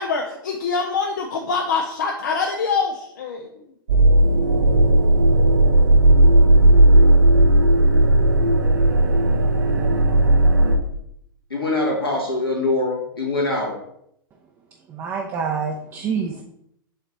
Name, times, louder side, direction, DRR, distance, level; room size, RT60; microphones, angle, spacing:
voice 1, 0.0-3.5, left 4 dB, 55° left, 0.7 m, -24 dB
sound 1, 3.9-10.8, right 1 dB, 60° right, 0.9 m, -15 dB
voice 2, 11.5-13.8, left 2 dB, 80° left, 2.2 m, -23 dB
voice 3, 14.9-16.4, right 6 dB, 20° right, 0.7 m, -26 dB
7.5 x 3.2 x 4.0 m
figure-of-eight pair, 105°, 12 cm